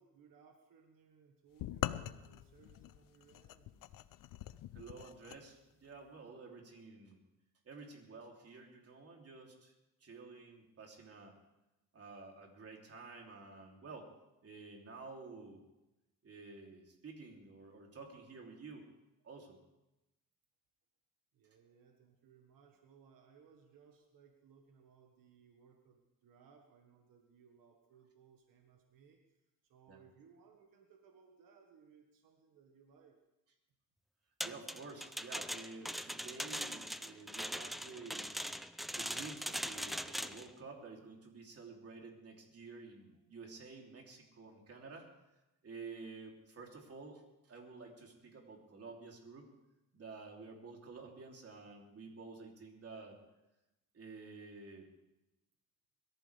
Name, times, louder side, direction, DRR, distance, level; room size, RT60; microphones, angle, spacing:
voice 1, 0.0-3.8 21.3-29.2 29.7-33.1 44.8-44.9, right 6 dB, 90° right, 3 dB, 1.6 m, -64 dB
sound 1, 1.6-5.4, left 13 dB, 85° left, 0.6 m, -43 dB
voice 2, 4.7-7.2 7.6-9.7 10.0-11.3 11.9-14.1 14.4-15.6 16.2-18.9 19.2-19.6 29.9-30.0 34.4-38.3 38.9-45.1 45.6-47.2 47.5-49.5 49.9-53.2 53.9-54.9, right 4 dB, 45° right, 0 dB, 3.2 m, -51 dB
sound 2, 34.4-40.5, equal, ahead, 0.5 m, -41 dB
22.0 x 14.0 x 3.5 m, 0.95 s
cardioid pair, 110°, 32 cm